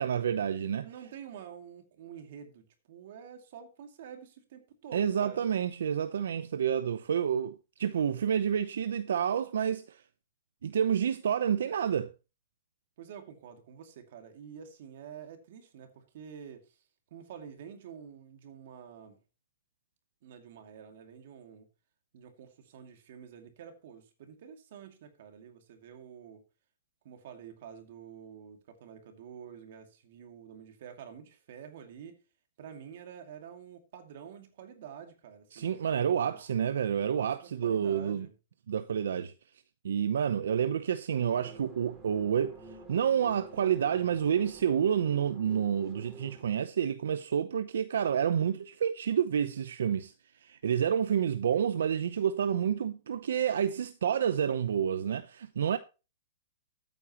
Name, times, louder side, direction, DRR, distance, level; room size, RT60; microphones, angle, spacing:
voice 1, 0.0-0.9 4.9-10.0 10.6-12.1 35.5-38.3 38.7-39.3 39.8-42.6 42.9-50.1 50.4-55.8, right 8 dB, 80° right, 0.7 m, -29 dB
voice 2, 0.8-5.5 13.0-16.8 17.1-19.2 20.2-21.7 22.1-26.4 27.0-32.2 32.6-36.4 36.9-38.3, right 8 dB, 50° right, 2.4 m, -48 dB
sound 1, 41.1-46.4, right 2 dB, 15° right, 2.4 m, -49 dB
13.5 x 9.0 x 3.0 m
hypercardioid pair, 170°, 0 cm